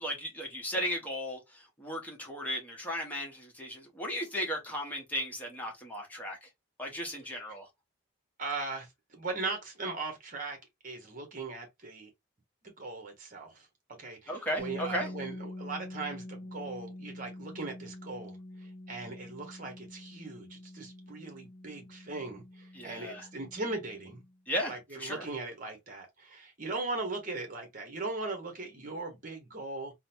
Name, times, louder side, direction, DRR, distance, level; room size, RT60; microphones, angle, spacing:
voice 1, 0.0-6.5 6.8-7.7 14.3-15.1 22.7-23.3 24.5-25.2, equal, 10° left, 0.9 m, -36 dB
voice 2, 8.4-10.6 10.8-12.1 12.8-13.7 14.0-18.4 18.6-24.2 24.7-29.9, right 3 dB, 40° right, 1.0 m, -39 dB
sound 1, 14.6-24.3, left 1 dB, 75° left, 0.7 m, -46 dB
3.8 x 2.1 x 2.7 m
head